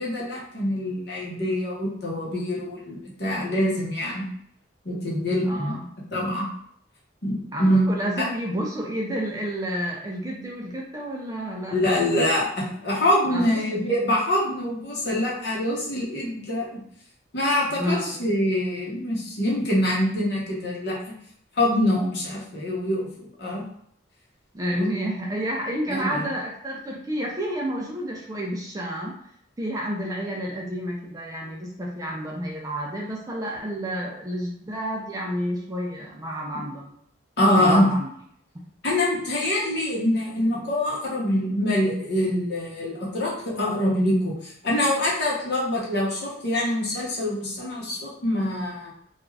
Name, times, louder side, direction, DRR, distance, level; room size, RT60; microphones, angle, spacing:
voice 1, 0.0-4.2 4.8-5.8 6.1-6.5 7.2-7.9 8.2-8.3 11.7-16.8 17.3-21.0 21.6-23.6 24.7-24.9 25.9-26.3 36.5-36.6 37.4-37.9 38.8-48.9, left 1 dB, 55° left, -5 dB, 0.9 m, -24 dB
voice 2, 5.4-5.8 7.5-12.0 13.3-13.8 17.7-18.3 24.5-29.1 29.6-36.9 37.6-38.1, equal, 15° right, -2 dB, 0.3 m, -30 dB
2.4 x 2.3 x 3.2 m, 0.67 s
head